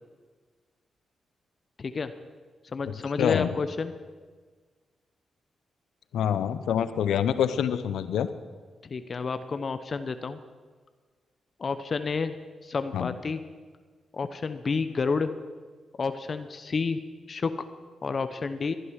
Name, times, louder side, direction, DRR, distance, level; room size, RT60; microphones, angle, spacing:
voice 1, 1.8-2.1 2.7-3.9 8.8-10.4 11.6-12.3 12.6-13.4 14.1-15.3 16.0-17.0 17.3-17.5 18.0-18.7, left 4 dB, 50° left, 11 dB, 0.9 m, -30 dB
voice 2, 2.9-3.5 6.1-8.3 12.9-13.1, left 9 dB, 85° left, 12 dB, 0.8 m, -26 dB
21.0 x 11.0 x 6.4 m, 1.5 s
supercardioid pair, 50°, 0 cm